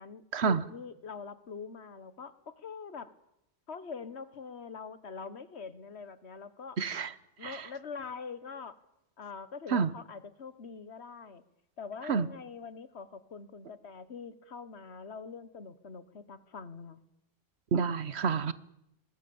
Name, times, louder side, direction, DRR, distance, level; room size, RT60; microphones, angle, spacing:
voice 1, 0.0-3.1 3.7-6.8 7.4-8.8 9.2-11.4 11.8-17.0, left 5 dB, 85° left, 14 dB, 1.6 m, -44 dB
voice 2, 6.8-7.1 7.4-7.7 9.7-9.9 12.1-12.3 17.7-18.5, right 5 dB, 75° right, 16 dB, 1.3 m, -28 dB
22.5 x 20.5 x 8.7 m, 0.82 s
omnidirectional pair, 1.1 m